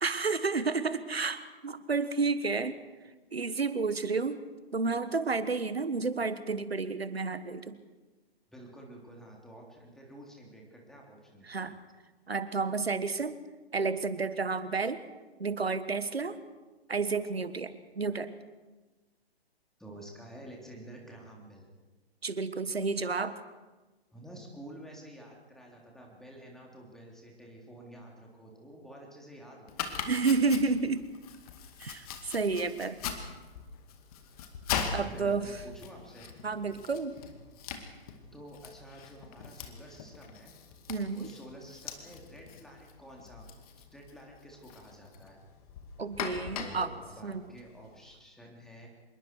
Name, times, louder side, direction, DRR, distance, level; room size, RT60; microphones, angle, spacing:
voice 1, 0.0-2.7 3.3-4.4 4.7-7.8 11.5-11.7 12.3-13.4 13.7-15.0 15.4-16.4 16.9-18.3 22.2-23.4 30.1-31.1 31.8-33.0 34.9-35.5 36.4-37.2 40.9-41.3 46.0-46.9 47.2-47.4, right 4 dB, 75° right, 13 dB, 1.5 m, -31 dB
voice 2, 8.5-11.7 19.8-21.7 24.1-30.0 34.8-36.3 38.3-40.5 41.1-43.5 43.9-45.4 46.6-48.9, right 1 dB, ahead, -2 dB, 3.4 m, -50 dB
Domestic sounds home sounds, 29.7-48.1, left 7 dB, 35° left, 2.3 m, -41 dB
25.5 x 22.0 x 4.7 m, 1.2 s
figure-of-eight pair, 120°, 31 cm